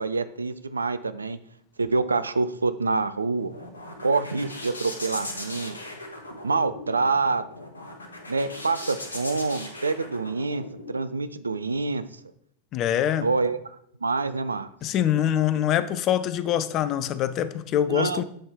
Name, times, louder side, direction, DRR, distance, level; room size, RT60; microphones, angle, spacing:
voice 1, 0.0-1.4 1.8-3.5 4.0-5.8 6.4-7.4 8.3-12.0 13.2-13.6 14.0-14.7 17.9-18.2, right 3 dB, 75° right, 13 dB, 0.4 m, -26 dB
sound 1, 3.0-11.0, left 1 dB, 80° left, 0.8 m, -39 dB
voice 2, 12.7-13.3 14.8-18.2, left 10 dB, 35° left, 15 dB, 0.4 m, -24 dB
7.6 x 4.3 x 3.5 m, 0.68 s
figure-of-eight pair, 90°, 0 cm